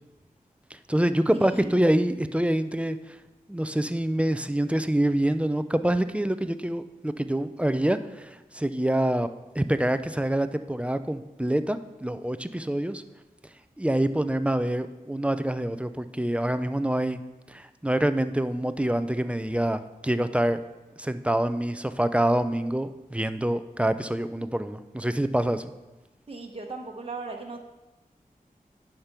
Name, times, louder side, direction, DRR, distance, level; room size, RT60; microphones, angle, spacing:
voice 1, 0.7-3.2 3.5-9.3 9.5-13.0 13.8-17.2 17.5-20.6 21.0-25.7, right 1 dB, 10° right, 11 dB, 0.5 m, -26 dB
voice 2, 26.3-27.6, right 3 dB, 40° right, 1 dB, 1.1 m, -37 dB
10.0 x 5.2 x 6.0 m, 1.1 s
wide cardioid pair, 70°, 15 cm